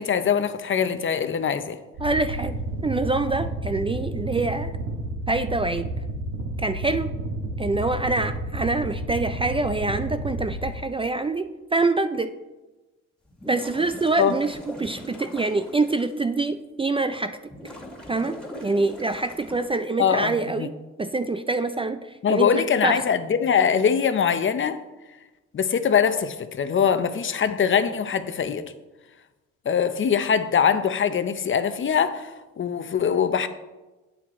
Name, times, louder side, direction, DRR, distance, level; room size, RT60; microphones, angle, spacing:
voice 1, 0.0-1.8 14.2-14.3 20.0-20.7 22.2-24.8 25.5-28.6 29.7-32.3 32.6-33.5, left 7 dB, 40° left, 0.7 m, -22 dB
sound 1, 1.9-10.7, right 2 dB, 85° right, 2.1 m, -31 dB
voice 2, 2.0-2.5 2.8-4.7 5.3-5.9 6.6-7.1 7.6-12.3 13.5-17.4 18.1-20.7 21.0-23.0, right 3 dB, 20° right, 0.4 m, -25 dB
sound 2, 13.3-16.1 16.6-16.7 17.5-19.7, equal, 5° left, 2.3 m, -41 dB
8.8 x 7.4 x 4.2 m
cardioid pair, 90°, 30 cm